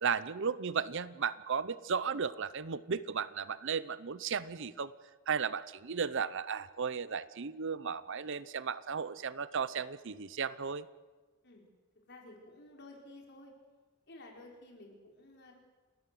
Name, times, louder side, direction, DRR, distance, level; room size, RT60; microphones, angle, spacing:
voice 1, 0.0-4.9 5.3-10.9, right 6 dB, 60° right, 16 dB, 0.7 m, -35 dB
voice 2, 12.1-13.5 14.1-15.5, left 2 dB, 50° left, 0 dB, 4.9 m, -53 dB
30.0 x 13.0 x 7.8 m, 1.3 s
head